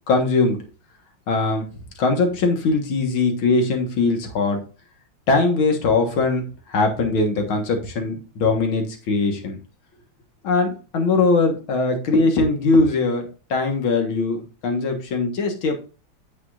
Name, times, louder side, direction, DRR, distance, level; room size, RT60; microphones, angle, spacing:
voice 1, 0.1-0.6 1.3-1.7 2.0-4.6 5.3-6.4 6.7-9.6 10.4-15.7, left 3 dB, 85° left, 4 dB, 2.3 m, -21 dB
8.7 x 8.1 x 2.5 m, 0.35 s
omnidirectional pair, 2.2 m